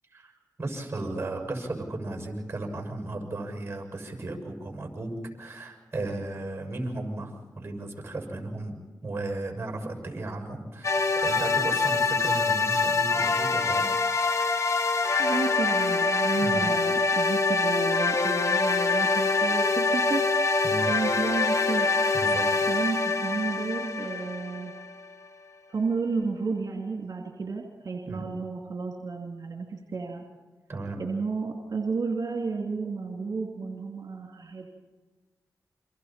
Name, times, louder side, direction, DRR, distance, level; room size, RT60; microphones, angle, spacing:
voice 1, 0.6-13.9 16.4-16.7 20.6-20.9 22.1-22.4 28.1-28.2 30.7-31.0, right 2 dB, 35° right, 3 dB, 6.5 m, -35 dB
sound 1, 10.8-25.1, left 3 dB, 45° left, 2.2 m, -25 dB
voice 2, 15.2-20.3 20.9-21.9 22.7-24.7 25.7-30.2 31.0-34.7, right 4 dB, 65° right, 0 dB, 2.6 m, -32 dB
29.5 x 24.5 x 4.4 m, 1.3 s
cardioid pair, 50°, 7 cm